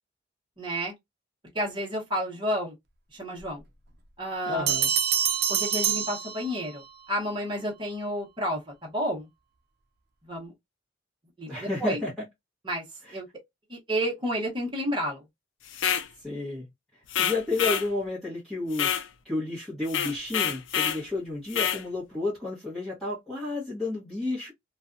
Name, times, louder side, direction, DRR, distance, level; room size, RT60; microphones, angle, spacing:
voice 1, 0.6-0.9 1.5-2.7 3.1-3.6 4.2-4.7 5.5-9.3 10.3-10.5 11.4-12.0 12.6-12.8 13.1-13.3 13.7-15.2, equal, 25° right, 1.0 m, -30 dB
voice 2, 4.4-4.9 11.5-12.2 13.0-13.2 16.2-16.6 17.2-18.9 19.2-24.5, left 2 dB, ahead, 1.0 m, -31 dB
Bell, 4.7-6.9, right 8 dB, 55° right, 0.5 m, -26 dB
sound 1, 15.7-16.1 17.1-17.9 18.7-19.1 19.9-21.0 21.5-21.8, left 9 dB, 75° left, 0.4 m, -27 dB
2.5 x 2.3 x 2.4 m
head